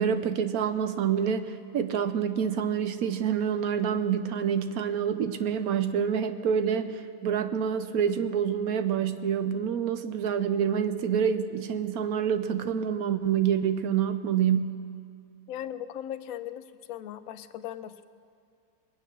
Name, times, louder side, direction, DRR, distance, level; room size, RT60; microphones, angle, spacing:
voice 1, 0.0-14.8, right 8 dB, 70° right, 10 dB, 1.0 m, -27 dB
voice 2, 15.5-18.0, left 11 dB, 65° left, 12 dB, 0.9 m, -38 dB
21.5 x 9.6 x 6.5 m, 2.3 s
omnidirectional pair, 1.9 m